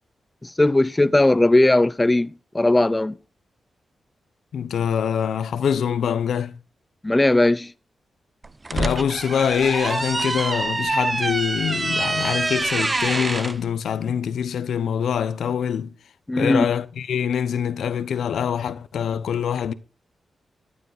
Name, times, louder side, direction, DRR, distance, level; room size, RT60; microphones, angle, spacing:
voice 1, 0.4-3.1 7.0-7.7 16.3-16.7, left 2 dB, 15° left, 0.5 m, -18 dB
voice 2, 4.5-6.6 8.7-15.9 16.4-19.7, left 8 dB, 85° left, 0.8 m, -24 dB
sound 1, 8.4-13.6, right 2 dB, 30° right, 0.7 m, -25 dB
14.0 x 9.7 x 4.1 m
cardioid pair, 85°, 0 cm